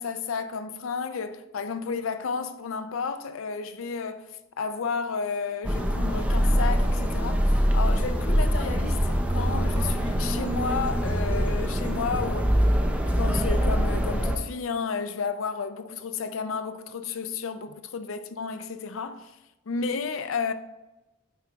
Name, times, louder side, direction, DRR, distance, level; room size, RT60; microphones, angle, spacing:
voice 1, 0.0-12.6 13.2-19.3 19.7-20.5, left 5 dB, 80° left, 0.5 m, -32 dB
sound 1, 5.6-14.4, equal, 5° right, 0.6 m, -24 dB
9.5 x 3.4 x 3.9 m
head